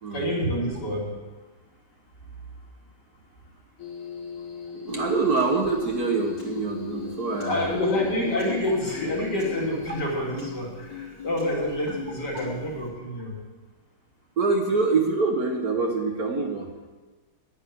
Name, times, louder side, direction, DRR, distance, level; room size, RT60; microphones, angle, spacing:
voice 1, 0.1-1.1 7.3-13.4, left 1 dB, 50° left, -4 dB, 3.5 m, -28 dB
sound 1, 3.8-10.3, left 7 dB, 90° left, 2.7 m, -39 dB
voice 2, 4.7-7.8 8.2-8.3 14.4-16.9, right 4 dB, 50° right, 2 dB, 1.5 m, -25 dB
Piano, 4.9-12.9, left 7 dB, 70° left, 4.0 m, -41 dB
10.0 x 10.0 x 7.6 m, 1.3 s
omnidirectional pair, 2.3 m